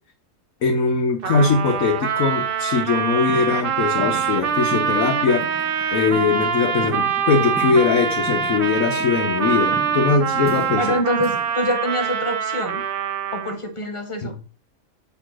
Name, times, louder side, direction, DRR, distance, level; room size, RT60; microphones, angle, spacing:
voice 1, 0.6-5.5 5.9-10.9 14.2-14.3, left 5 dB, 70° left, 1.2 m, -21 dB
Trumpet, 1.2-13.7, right 7 dB, 50° right, 0.9 m, -24 dB
sound 1, 3.3-11.5, right 2 dB, 20° right, 0.3 m, -38 dB
voice 2, 10.8-12.8 13.3-14.3, equal, 25° left, 0.8 m, -25 dB
8.0 x 3.1 x 6.1 m
omnidirectional pair, 1.5 m